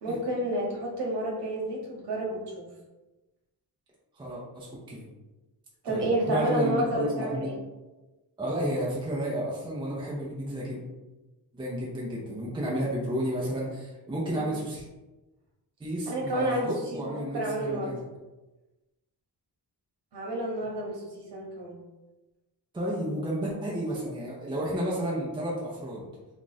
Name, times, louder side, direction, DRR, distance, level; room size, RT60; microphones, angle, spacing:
voice 1, 0.0-2.7 5.8-7.5 14.3-14.5 16.1-17.9 20.1-21.8, right 1 dB, 70° right, -2 dB, 1.1 m, -30 dB
voice 2, 4.2-5.1 5.9-7.5 8.4-10.8 11.5-14.8 15.8-18.0 22.7-26.1, right 1 dB, 10° right, -5 dB, 0.5 m, -32 dB
2.9 x 2.4 x 4.0 m, 1.1 s
wide cardioid pair, 175°, 42 cm